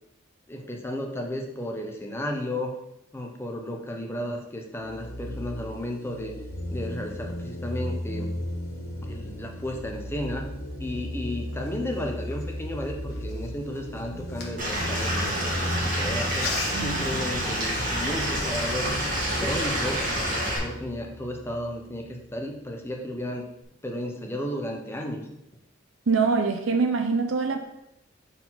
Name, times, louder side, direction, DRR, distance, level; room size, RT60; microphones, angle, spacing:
voice 1, 0.5-2.7 3.1-6.3 6.7-8.3 9.0-10.5 10.8-18.9 19.4-23.4 23.8-25.3, left 1 dB, 10° left, 1 dB, 0.8 m, -33 dB
sound 1, 4.8-22.2, left 1 dB, 90° left, 0.9 m, -36 dB
sound 2, 11.5-15.5 16.2-17.0 17.6-17.7 18.0-18.6, left 4 dB, 55° left, 1.2 m, -39 dB
Stream / Liquid, 14.6-20.6, equal, 45° right, 1.7 m, -28 dB
voice 2, 16.7-17.2 26.1-27.6, right 4 dB, 75° right, 5 dB, 0.6 m, -24 dB
4.5 x 4.0 x 5.7 m, 0.81 s
head